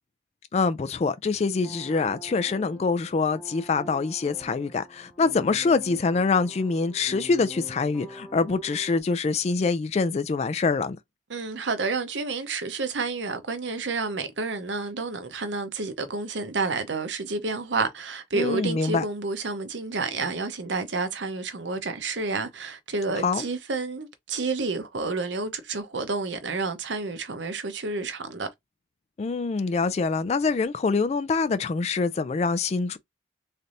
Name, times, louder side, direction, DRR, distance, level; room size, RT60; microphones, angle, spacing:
voice 1, 0.5-11.0 18.3-19.0 23.2-23.4 29.2-33.0, left 4 dB, 35° left, 0.3 m, -25 dB
sound 1, 1.5-9.0, equal, 10° left, 0.9 m, -45 dB
voice 2, 11.3-28.5, right 3 dB, 75° right, 0.8 m, -30 dB
4.0 x 3.3 x 2.6 m
head